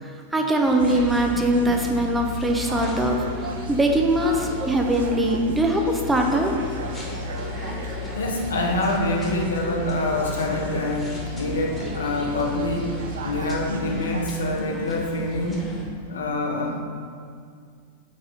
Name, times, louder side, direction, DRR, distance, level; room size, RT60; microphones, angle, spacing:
voice 1, 0.0-6.5, right 1 dB, 10° right, 2 dB, 0.6 m, -22 dB
sound 1, 0.6-15.8, left 1 dB, 15° left, 1.4 m, -40 dB
sound 2, 0.8-14.3, left 1 dB, 60° right, 0.4 m, -33 dB
voice 2, 8.2-15.7 16.1-16.8, left 1 dB, 65° left, 1 dB, 0.8 m, -26 dB
4.7 x 4.2 x 5.2 m, 2.1 s
figure-of-eight pair, 90°, 0 cm